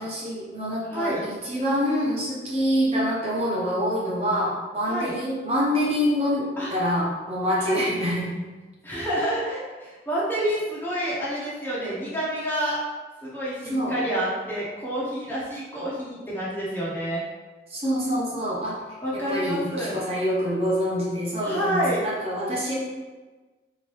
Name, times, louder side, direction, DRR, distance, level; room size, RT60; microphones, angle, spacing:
voice 1, 0.0-8.3 13.7-13.9 17.7-19.0 19.3-22.7, equal, 35° right, -6 dB, 0.9 m, -26 dB
voice 2, 0.9-1.2 4.9-5.1 6.6-6.7 7.6-7.9 8.8-12.8 13.2-17.2 19.0-20.0 21.4-22.0, equal, 10° left, -8 dB, 0.7 m, -28 dB
3.8 x 2.9 x 3.1 m, 1.3 s
head